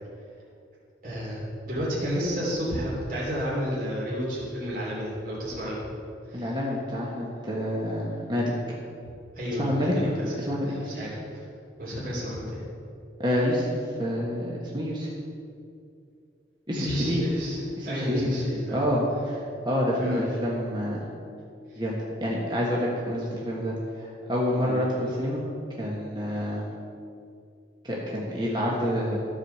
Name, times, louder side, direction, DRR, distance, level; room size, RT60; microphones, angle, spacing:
voice 1, 1.0-5.8 6.3-6.5 9.4-10.3 10.7-11.4 11.8-12.6 16.7-17.6 17.8-18.8 20.0-20.2 21.7-21.8 24.6-24.8, equal, 50° right, -6 dB, 3.0 m, -31 dB
voice 2, 6.3-8.5 9.6-9.9 10.5-11.0 13.2-13.7 14.0-15.1 16.7-17.2 17.8-18.3 18.7-21.0 21.8-25.4 25.8-26.7 27.8-29.2, equal, 25° right, -5 dB, 1.4 m, -28 dB
14.0 x 4.9 x 6.7 m, 2.5 s
head